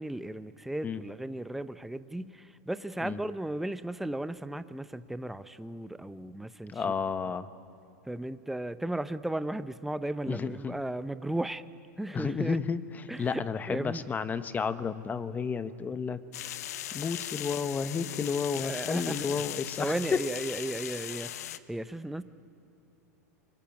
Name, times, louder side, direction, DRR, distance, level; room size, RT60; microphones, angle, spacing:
voice 1, 0.0-6.8 8.1-11.6 12.0-12.6 13.1-14.0 18.6-19.4 19.8-22.2, right 1 dB, 5° right, 13 dB, 0.7 m, -35 dB
voice 2, 6.7-7.5 10.3-10.8 12.1-12.8 13.2-16.2 16.5-16.6 16.9-20.2, left 5 dB, 20° left, 13 dB, 1.0 m, -31 dB
sound 1, 16.3-21.6, left 12 dB, 75° left, 0.9 m, -38 dB
24.5 x 22.0 x 9.4 m, 2.9 s
hypercardioid pair, 110°, 9 cm